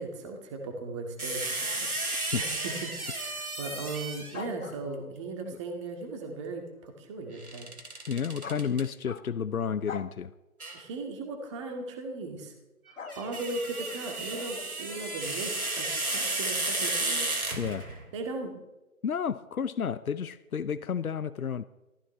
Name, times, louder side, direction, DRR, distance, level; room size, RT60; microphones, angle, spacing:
voice 1, 0.0-7.7 10.7-12.5 12.9-17.4 18.1-18.5, right 3 dB, 20° right, 4 dB, 2.1 m, -38 dB
sound 1, 1.2-4.5 7.4-8.8 10.6-10.8 12.9-18.0, right 2 dB, 85° right, 3.0 m, -33 dB
sound 2, 4.3-5.2 8.4-9.5 9.9-10.2 11.4-11.7 13.0-15.2, left 5 dB, 65° left, 1.1 m, -45 dB
voice 2, 8.1-10.3 17.6-17.9 19.0-21.7, left 7 dB, 80° left, 14 dB, 0.7 m, -31 dB
24.0 x 15.0 x 3.4 m, 1.0 s
figure-of-eight pair, 145°, 42 cm